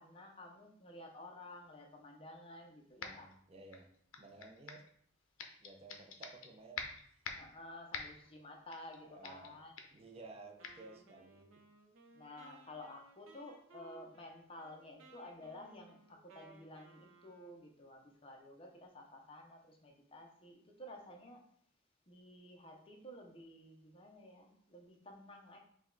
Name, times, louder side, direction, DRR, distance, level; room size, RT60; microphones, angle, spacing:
voice 1, 0.0-3.3 7.4-9.7 12.1-21.5 22.1-25.6, left 1 dB, 25° left, 1 dB, 0.6 m, -53 dB
sound 1, 3.0-3.3 3.7-4.9 5.4-6.5 6.8-7.5 7.9-8.3 8.7-9.0 9.2-9.5 9.8-10.0 10.6-10.8, left 5 dB, 75° left, 0.5 m, -45 dB
voice 2, 3.0-3.9 4.2-4.8 5.6-6.9 9.1-9.6 9.9-11.6, right 3 dB, 30° right, 3 dB, 0.5 m, -55 dB
Wind instrument woodwind instrument, 10.6-17.7, right 3 dB, 75° right, 0.7 m, -61 dB
4.9 x 2.2 x 3.8 m, 0.66 s
head